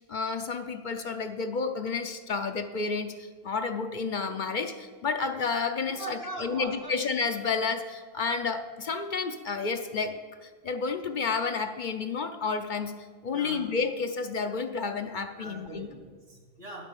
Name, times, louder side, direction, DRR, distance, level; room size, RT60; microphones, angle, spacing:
voice 1, 0.0-12.9 13.2-15.9, left 4 dB, 55° left, 7 dB, 0.7 m, -31 dB
voice 2, 5.9-6.9 13.3-13.6 15.4-16.8, right 2 dB, 75° right, 0 dB, 2.4 m, -41 dB
10.5 x 6.1 x 7.4 m, 1.5 s
omnidirectional pair, 1.0 m